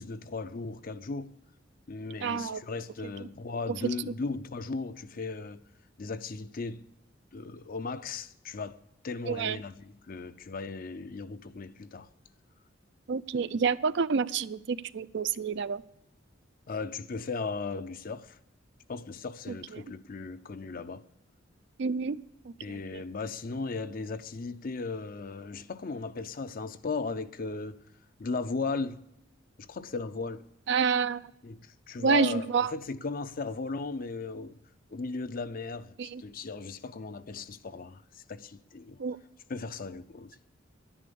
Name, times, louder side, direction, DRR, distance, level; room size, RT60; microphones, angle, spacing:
voice 1, 0.0-1.3 1.9-5.6 6.0-6.9 7.3-8.8 9.0-12.1 16.7-18.4 18.9-21.0 22.6-27.8 28.2-29.0 29.6-30.5 31.4-34.6 34.9-39.0 39.5-40.4, left 4 dB, 50° left, 0.6 m, -37 dB
voice 2, 2.2-2.6 9.3-9.6 13.1-15.8 19.7-19.8 21.8-22.2 22.9-23.0 30.7-31.2 32.0-32.7 36.0-36.2 39.0-39.2, right 5 dB, 65° right, 0.4 m, -28 dB
11.0 x 10.0 x 6.9 m
head